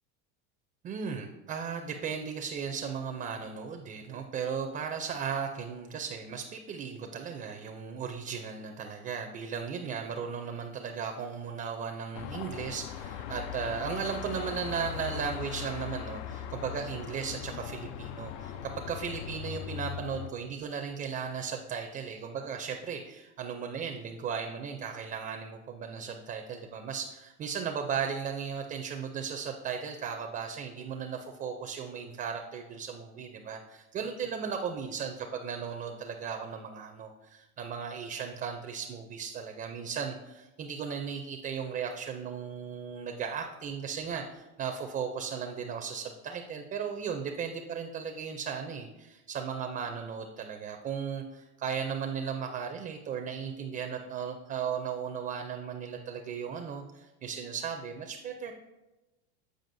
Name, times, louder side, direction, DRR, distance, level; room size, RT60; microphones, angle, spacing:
voice 1, 0.8-58.5, right 6 dB, 25° right, 4 dB, 0.4 m, -36 dB
Car passing by / Traffic noise roadway noise / Engine, 12.1-20.3, left 10 dB, 75° left, 0.5 m, -39 dB
7.7 x 4.9 x 2.6 m, 1.0 s
supercardioid pair, 125°, 35 cm